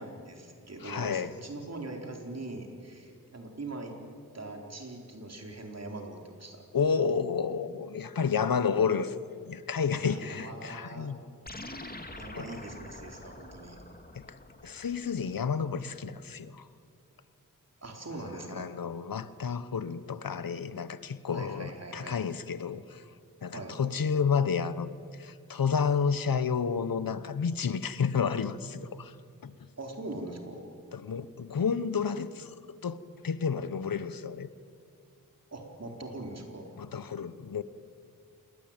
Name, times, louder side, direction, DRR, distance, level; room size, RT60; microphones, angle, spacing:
voice 1, 0.0-4.0 4.3-6.6 9.9-11.1 12.1-13.8 14.7-14.9 17.8-18.7 21.3-22.2 23.5-23.7 29.8-30.6 35.5-36.7, right 2 dB, 50° right, 2 dB, 4.3 m, -42 dB
voice 2, 0.8-1.3 6.7-9.1 9.5-11.2 12.4-12.5 14.1-14.2 14.6-16.7 18.5-23.0 23.4-29.1 29.4-29.5 30.9-32.5 32.8-33.0 33.2-34.5 36.8-37.6, left 6 dB, 85° left, 15 dB, 1.1 m, -30 dB
sound 1, 11.5-16.1, left 2 dB, 25° left, 2.4 m, -46 dB
27.5 x 22.0 x 9.0 m, 2.4 s
wide cardioid pair, 80°, 34 cm